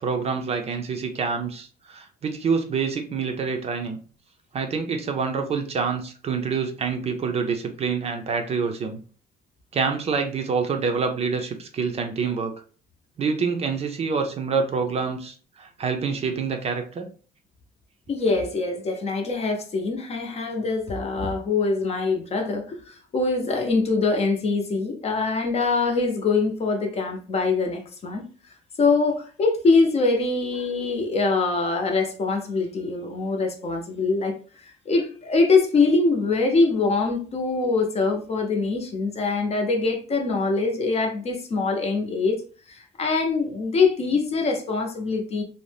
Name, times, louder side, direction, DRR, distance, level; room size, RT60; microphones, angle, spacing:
voice 1, 0.0-4.0 4.5-9.0 9.7-12.5 13.2-17.1, right 5 dB, 40° right, 0.5 m, -26 dB
voice 2, 18.1-28.2 28.8-42.4 42.7-45.4, left 3 dB, 40° left, 0.6 m, -23 dB
2.6 x 2.1 x 3.2 m
cardioid pair, 110°, 17 cm